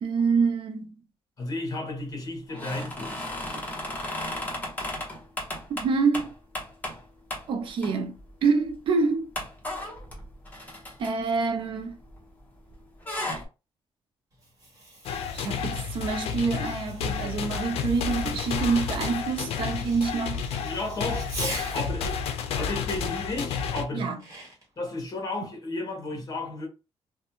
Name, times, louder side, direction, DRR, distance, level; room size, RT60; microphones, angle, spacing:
voice 1, 0.0-1.0 5.7-6.3 7.5-9.3 11.0-12.0 15.3-20.5 23.9-24.2, right 4 dB, 55° right, 0.5 m, -26 dB
voice 2, 1.4-3.2 20.6-24.1 24.8-26.7, left 2 dB, 35° left, 1.1 m, -33 dB
sound 1, 2.5-7.0 7.3-7.5 7.8-8.3 8.7-8.8 9.3-12.4 12.7-13.4, left 1 dB, 15° left, 0.9 m, -35 dB
Fireworks, 14.3-22.0 23.8-24.8, right 2 dB, 30° right, 1.2 m, -43 dB
sound 2, 15.1-23.9, left 6 dB, 75° left, 0.4 m, -31 dB
2.6 x 2.2 x 2.8 m
cardioid pair, 145°, 10 cm